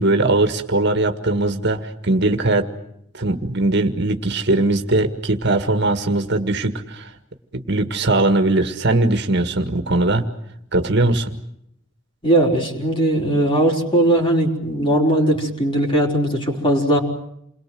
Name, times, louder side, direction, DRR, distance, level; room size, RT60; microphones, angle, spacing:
voice 1, 0.0-2.7 3.1-7.1 7.5-10.2 10.7-11.3, right 2 dB, 55° right, 7 dB, 1.9 m, -20 dB
voice 2, 12.2-17.0, right 1 dB, 25° left, 0 dB, 4.9 m, -19 dB
29.0 x 22.0 x 7.8 m, 0.75 s
head